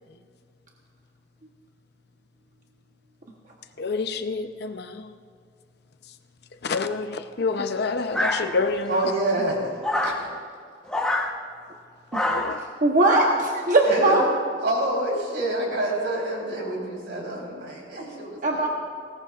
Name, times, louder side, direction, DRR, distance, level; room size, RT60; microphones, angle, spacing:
voice 1, 3.8-5.1 6.6-9.1 12.2-12.6, left 4 dB, 60° left, 8 dB, 0.7 m, -28 dB
sound 1, 8.1-8.9 9.8-10.2 10.9-11.3 12.1-12.6, left 1 dB, 5° left, 1.0 m, -26 dB
voice 2, 8.9-9.6 10.0-10.1 13.8-14.4 14.6-18.7, right 1 dB, 80° right, -2 dB, 3.8 m, -27 dB
voice 3, 12.8-14.2 18.4-18.7, right 2 dB, 45° right, -1 dB, 1.0 m, -19 dB
19.5 x 17.5 x 2.5 m, 2.2 s
head